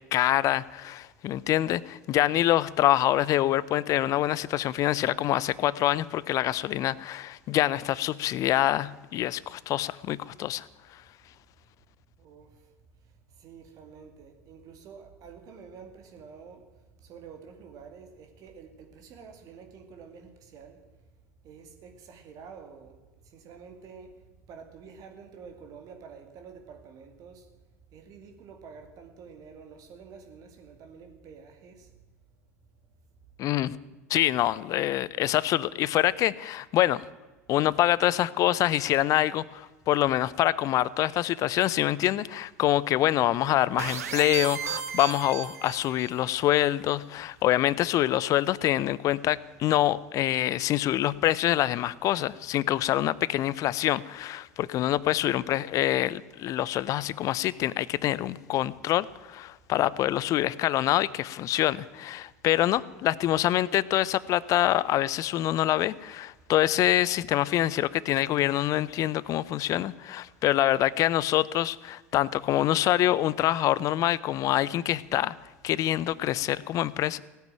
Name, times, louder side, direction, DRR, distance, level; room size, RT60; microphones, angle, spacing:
voice 1, 0.1-10.7 33.4-33.7 34.1-37.0 37.5-75.3 75.6-77.2, left 13 dB, 45° left, 20 dB, 0.6 m, -25 dB
voice 2, 12.2-16.7 17.0-20.8 21.4-27.5 27.9-31.9, right 6 dB, 45° right, 5 dB, 2.4 m, -48 dB
sound 1, 43.8-46.2, right 8 dB, 75° right, 1.4 m, -34 dB
17.0 x 9.2 x 9.1 m, 1.2 s
figure-of-eight pair, 75°, 8 cm